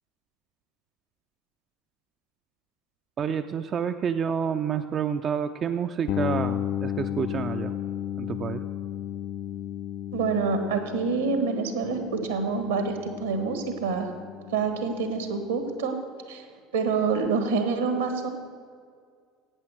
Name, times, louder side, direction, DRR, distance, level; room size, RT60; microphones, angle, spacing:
voice 1, 3.2-7.7 8.2-8.6, right 7 dB, 40° right, 8 dB, 0.4 m, -29 dB
sound 1, 6.1-15.8, left 11 dB, 55° left, 0.3 m, -34 dB
voice 2, 10.1-14.1 14.5-16.0 16.3-16.4 16.7-18.3, right 5 dB, 80° right, 7 dB, 1.4 m, -27 dB
10.5 x 8.7 x 6.4 m, 2.1 s
figure-of-eight pair, 65°, 0 cm